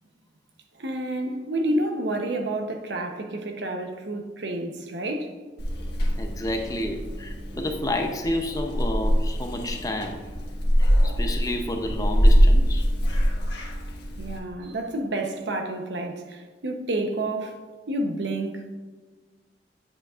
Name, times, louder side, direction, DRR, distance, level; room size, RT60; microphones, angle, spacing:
voice 1, 0.8-5.3 14.2-18.6, right 1 dB, 75° right, 0.9 m, -29 dB
Purr / Meow, 5.6-14.4, equal, 65° left, 1.4 m, -23 dB
voice 2, 6.2-10.2 10.8-12.9, left 1 dB, 20° left, 0.7 m, -30 dB
8.8 x 7.9 x 2.5 m
head